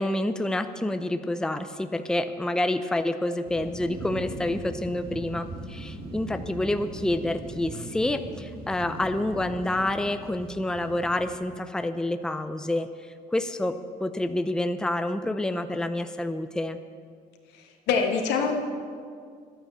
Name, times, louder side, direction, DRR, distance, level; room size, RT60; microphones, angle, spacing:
voice 1, 0.0-12.9 13.3-16.8, left 1 dB, 5° left, 9 dB, 0.6 m, -28 dB
sound 1, 3.5-11.3, right 2 dB, 60° right, 2.3 m, -39 dB
voice 2, 17.5-18.5, left 5 dB, 90° left, 3 dB, 1.6 m, -25 dB
11.5 x 10.5 x 6.9 m, 2.1 s
cardioid pair, 110°, 17 cm